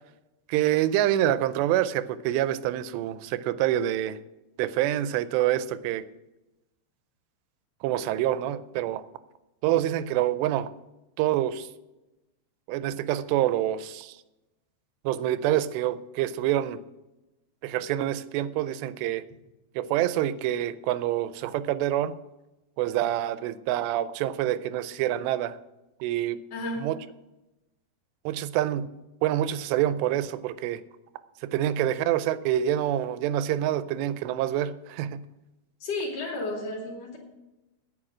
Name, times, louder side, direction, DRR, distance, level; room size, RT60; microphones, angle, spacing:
voice 1, 0.5-4.2 4.6-6.0 7.8-9.0 9.6-10.7 11.2-11.7 12.7-14.2 15.1-16.8 17.6-19.2 19.8-22.1 22.8-25.6 26.0-26.4 26.8-27.0 28.3-28.9 29.2-30.8 31.4-35.2, right 12 dB, 85° right, 14 dB, 2.7 m, -26 dB
voice 2, 26.5-26.9 35.8-37.2, left 2 dB, 45° left, 0 dB, 3.2 m, -32 dB
9.8 x 9.1 x 6.1 m, 0.99 s
omnidirectional pair, 4.9 m